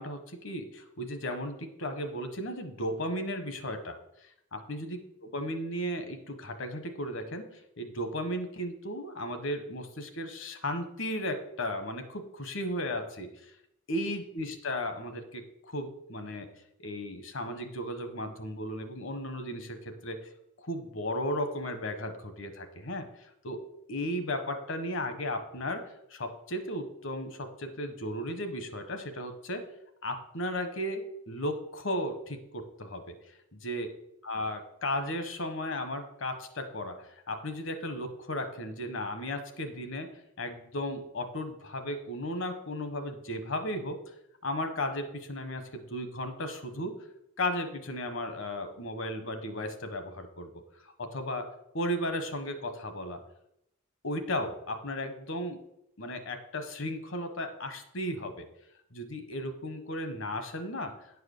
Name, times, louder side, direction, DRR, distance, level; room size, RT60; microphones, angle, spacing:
voice 1, 0.0-4.0 4.2-13.5 13.9-16.5 16.8-20.2 20.6-23.6 23.9-25.8 26.1-29.6 30.0-33.1 33.5-33.9 34.2-40.1 40.4-44.0 44.4-47.0 47.4-51.5 51.7-53.2 54.0-55.6 56.0-58.5 58.9-60.9, left 1 dB, 65° left, 7 dB, 1.2 m, -35 dB
9.8 x 4.8 x 6.5 m, 0.82 s
head